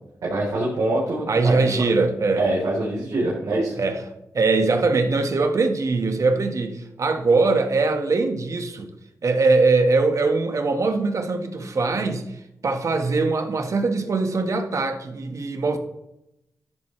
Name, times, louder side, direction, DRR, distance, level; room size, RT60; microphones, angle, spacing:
voice 1, 0.3-1.7 2.4-3.8, right 2 dB, 80° right, -6 dB, 4.0 m, -24 dB
voice 2, 1.3-2.4 3.8-4.0 4.3-8.9 9.2-12.3 12.6-15.8, right 3 dB, 60° right, 6 dB, 1.7 m, -21 dB
13.5 x 11.0 x 3.3 m, 0.87 s
cardioid pair, 60°, 6 cm